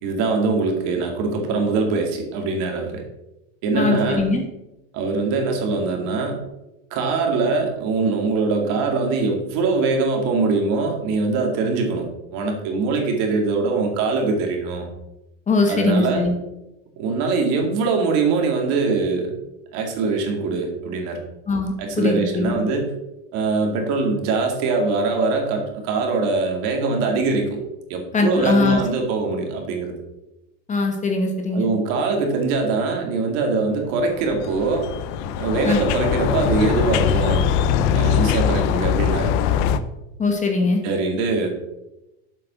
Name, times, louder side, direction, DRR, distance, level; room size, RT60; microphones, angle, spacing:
voice 1, 0.0-3.0 3.6-4.3 4.9-6.4 6.9-14.9 15.7-16.3 17.0-19.3 19.7-21.2 21.8-22.9 23.3-27.6 27.9-29.9 31.5-34.9 35.4-37.5 37.8-39.3 40.8-41.5, right 4 dB, 60° right, 2 dB, 2.3 m, -22 dB
voice 2, 3.7-4.4 15.5-16.3 21.5-22.6 28.1-28.8 30.7-31.7 35.6-35.8 40.2-40.8, left 3 dB, 20° left, 3 dB, 1.3 m, -21 dB
sound 1, 34.0-39.8, left 8 dB, 55° left, 0.7 m, -21 dB
7.6 x 4.9 x 6.2 m, 0.94 s
supercardioid pair, 125°, 39 cm